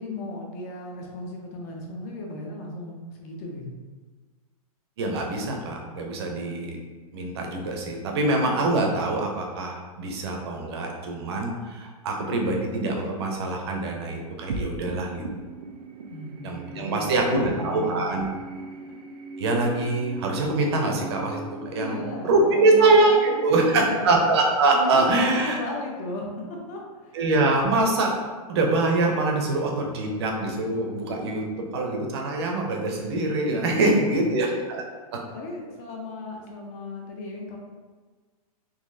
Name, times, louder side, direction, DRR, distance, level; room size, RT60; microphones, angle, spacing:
voice 1, 0.0-3.7 16.1-18.1 21.7-24.2 24.7-26.3 26.7-27.2 33.7-34.4 35.3-37.6, left 2 dB, 25° left, 0 dB, 0.5 m, -36 dB
voice 2, 5.0-6.8 7.1-15.2 16.4-18.3 19.4-21.4 21.7-25.6 27.1-28.2 28.5-31.4 31.7-34.8, right 2 dB, 40° right, 1 dB, 0.6 m, -24 dB
sound 1, 14.5-25.1, right 2 dB, 90° right, 0.6 m, -40 dB
3.9 x 2.7 x 2.6 m, 1.4 s
hypercardioid pair, 170°, 20 cm